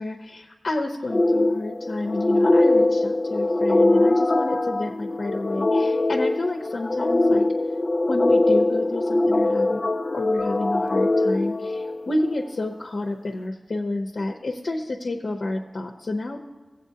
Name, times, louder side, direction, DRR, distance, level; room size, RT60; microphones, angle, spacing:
voice 1, 0.0-7.5 8.1-9.8 10.1-16.4, left 2 dB, 75° left, 1 dB, 0.8 m, -30 dB
sound 1, 1.1-12.4, left 2 dB, 45° left, 0.4 m, -22 dB
16.0 x 8.0 x 2.8 m, 1.3 s
wide cardioid pair, 75°, 0 cm